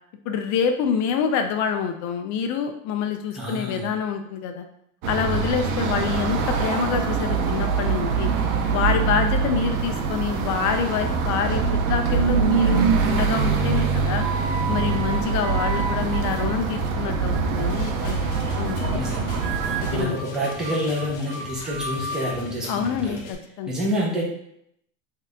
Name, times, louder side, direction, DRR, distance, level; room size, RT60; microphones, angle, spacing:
voice 1, 0.3-4.7 5.1-8.3 8.7-14.3 14.7-18.2 18.6-19.0 19.8-20.2 22.7-23.8, left 7 dB, 45° left, 6 dB, 0.5 m, -26 dB
voice 2, 3.3-3.9 18.9-19.4 19.9-23.2 23.7-24.3, equal, ahead, -6 dB, 1.0 m, -28 dB
sound 1, 5.0-20.0, right 5 dB, 90° right, 0.7 m, -24 dB
sound 2, 12.5-13.0 13.7-17.0 17.3-17.7 18.1-18.4 18.7-19.1 19.4-22.4, right 4 dB, 50° right, 0.6 m, -34 dB
sound 3, 17.7-23.3, left 5 dB, 65° left, 0.9 m, -40 dB
3.2 x 2.8 x 3.5 m, 0.72 s
supercardioid pair, 110°, 41 cm